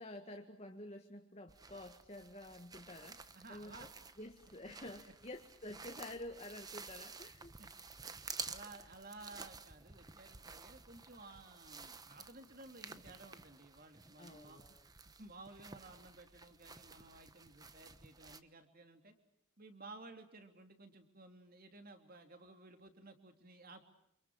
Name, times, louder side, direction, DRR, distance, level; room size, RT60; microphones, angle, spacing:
voice 1, 0.0-3.9 4.2-7.5 14.2-14.9, left 1 dB, 30° left, 4 dB, 1.8 m, -50 dB
sound 1, 1.5-18.4, right 4 dB, 15° right, 1.0 m, -52 dB
voice 2, 3.3-3.9 7.6-7.7 8.4-14.6 15.0-19.1 19.6-23.8, right 2 dB, 40° right, 6 dB, 3.3 m, -55 dB
29.0 x 28.0 x 6.4 m, 0.74 s
head